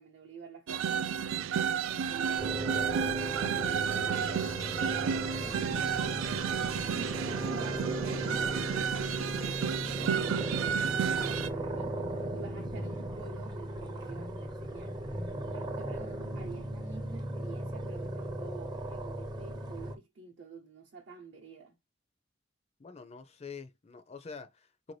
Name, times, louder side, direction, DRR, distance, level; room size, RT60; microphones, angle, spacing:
voice 1, 0.0-4.3 5.4-6.4 6.9-21.7, right 4 dB, 65° right, 0.8 m, -49 dB
sound 1, 0.7-11.5, right 7 dB, 80° right, 0.3 m, -32 dB
sound 2, 2.4-20.0, right 1 dB, 20° right, 0.5 m, -37 dB
sound 3, 4.1-9.9, left 10 dB, 85° left, 0.6 m, -53 dB
voice 2, 22.8-24.9, left 5 dB, 35° left, 0.4 m, -46 dB
4.6 x 2.6 x 3.1 m
head